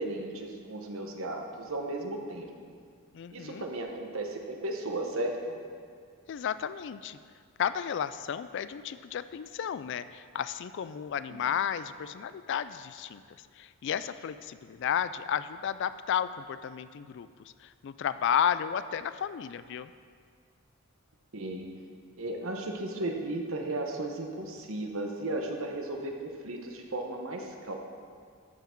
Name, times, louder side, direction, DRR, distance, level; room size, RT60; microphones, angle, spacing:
voice 1, 0.0-2.7 3.3-5.6 11.3-11.4 21.3-21.7 22.2-27.7, right 2 dB, 70° right, 2 dB, 1.1 m, -35 dB
voice 2, 3.1-3.7 6.3-7.2 7.6-13.2 13.6-19.9, left 8 dB, 55° left, 14 dB, 0.3 m, -33 dB
14.0 x 5.8 x 4.5 m, 2.1 s
head